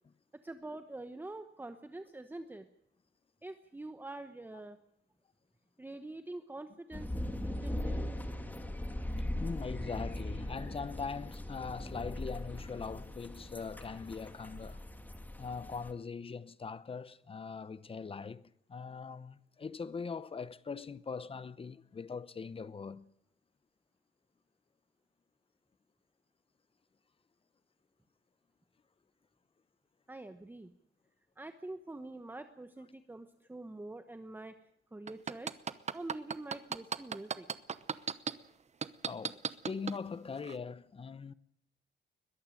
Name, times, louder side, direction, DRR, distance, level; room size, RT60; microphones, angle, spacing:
voice 1, 0.4-2.7 3.4-4.8 5.8-8.3 30.1-30.7 31.4-34.6 34.9-35.6 35.9-37.5, right 2 dB, 10° right, 1.1 m, -45 dB
sound 1, 6.9-15.9, left 1 dB, 10° left, 1.7 m, -39 dB
voice 2, 9.4-14.8 15.4-23.1 39.1-41.3, left 5 dB, 30° left, 0.8 m, -41 dB
sound 2, 35.1-38.3 38.8-40.0 40.4-40.5, right 6 dB, 35° right, 0.9 m, -34 dB
21.5 x 13.5 x 9.1 m
cardioid pair, 130°, 19 cm